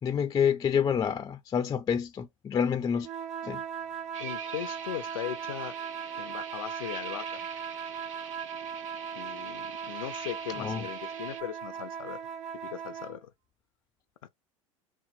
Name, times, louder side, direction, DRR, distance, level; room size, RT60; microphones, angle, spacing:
voice 1, 0.0-3.1 3.4-3.6 10.6-10.8, left 7 dB, 20° left, 0.4 m, -28 dB
sound 1, 3.0-13.2, right 7 dB, 40° right, 0.7 m, -38 dB
sound 2, 4.1-11.4, right 7 dB, 75° right, 1.0 m, -44 dB
voice 2, 4.2-5.7 6.2-7.5 9.1-12.2 12.6-13.3 14.2-14.3, left 12 dB, 80° left, 0.5 m, -39 dB
4.1 x 2.0 x 4.0 m
hypercardioid pair, 85°, 17 cm